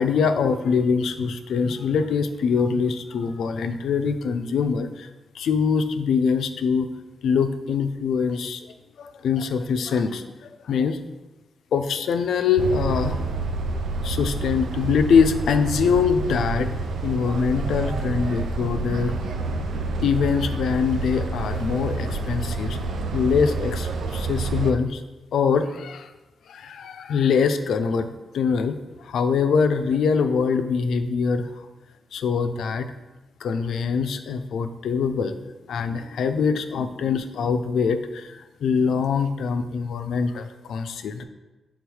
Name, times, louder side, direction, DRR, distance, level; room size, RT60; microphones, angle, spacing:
voice 1, 0.0-5.1 5.3-6.9 7.2-8.7 9.0-10.3 10.7-11.0 11.7-13.2 14.0-16.7 17.0-19.1 20.0-22.8 23.1-25.0 25.3-26.1 26.5-28.1 28.3-28.8 29.0-31.5 32.1-32.9 33.4-35.4 35.7-41.2, left 6 dB, 85° left, 9 dB, 0.4 m, -23 dB
sound 1, 12.6-24.7, right 3 dB, 85° right, 0.5 m, -28 dB
7.0 x 3.6 x 4.7 m, 1.1 s
cardioid pair, 90°, 0 cm